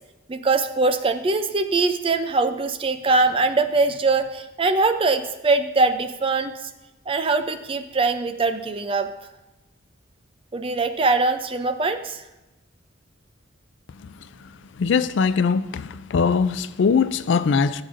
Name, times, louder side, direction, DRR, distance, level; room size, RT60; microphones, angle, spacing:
voice 1, 0.3-6.5 7.1-9.1 10.5-12.2, right 3 dB, 25° right, 9 dB, 0.5 m, -22 dB
voice 2, 14.8-15.8 16.1-17.8, left 5 dB, 65° left, 14 dB, 0.4 m, -21 dB
15.0 x 7.9 x 2.5 m, 1.0 s
head